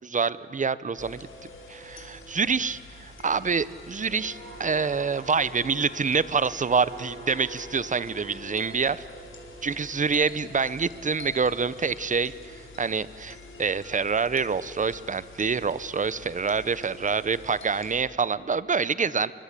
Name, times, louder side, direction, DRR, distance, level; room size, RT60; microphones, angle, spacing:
voice 1, 0.0-1.3 1.7-9.0 9.6-19.3, right 5 dB, 40° right, 17 dB, 0.8 m, -26 dB
sound 1, 1.0-18.0, left 2 dB, 85° left, 4.6 m, -46 dB
sound 2, 4.0-11.5 11.9-12.2, right 2 dB, 80° right, 7.3 m, -47 dB
30.0 x 23.5 x 8.4 m, 2.7 s
wide cardioid pair, 140°, 20 cm